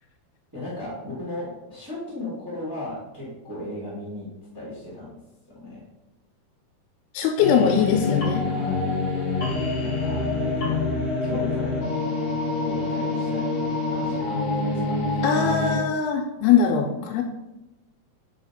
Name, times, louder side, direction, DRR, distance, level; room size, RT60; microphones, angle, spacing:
voice 1, 0.5-5.2 5.5-5.8 8.5-9.0 9.8-11.8 12.6-13.5 13.9-15.2, left 2 dB, 10° right, -7 dB, 1.0 m, -36 dB
voice 2, 7.1-8.5 15.2-17.2, left 7 dB, 90° left, 2 dB, 2.6 m, -21 dB
sound 1, 7.4-15.8, left 3 dB, 45° left, 1.3 m, -26 dB
5.6 x 4.7 x 4.2 m, 1.0 s
omnidirectional pair, 4.5 m